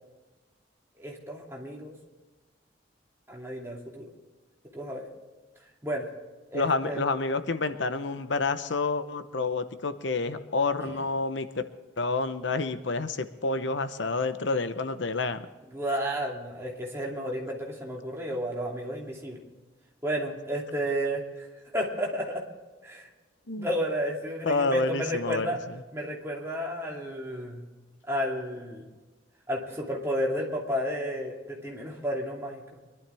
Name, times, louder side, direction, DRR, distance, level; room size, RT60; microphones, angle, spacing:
voice 1, 1.0-1.9 3.3-4.1 4.7-5.1 5.8-6.1 6.5-7.0 10.8-11.0 15.7-19.4 20.0-21.5 21.7-22.4 22.8-23.1 23.5-25.6 25.9-27.6 28.1-28.8 29.5-32.8, equal, 15° right, -2 dB, 2.7 m, -32 dB
voice 2, 6.5-11.6 12.0-15.4 23.5-23.7 24.4-25.5, left 3 dB, 75° left, 10 dB, 0.9 m, -28 dB
24.0 x 12.0 x 3.5 m, 1.3 s
head